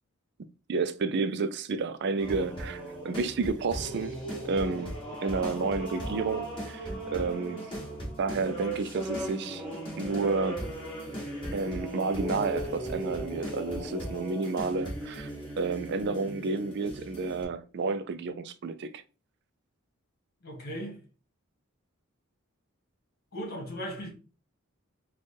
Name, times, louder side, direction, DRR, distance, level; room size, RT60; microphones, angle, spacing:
voice 1, 0.7-4.1 4.4-7.7 8.2-9.6 10.0-10.7 11.5-15.3 15.6-19.0, right 4 dB, 55° right, 0.4 m, -31 dB
sound 1, 2.2-17.4, right 1 dB, 25° left, 2.3 m, -37 dB
voice 2, 20.4-21.0 23.3-24.1, equal, 50° left, 1.9 m, -37 dB
4.4 x 2.3 x 4.4 m
head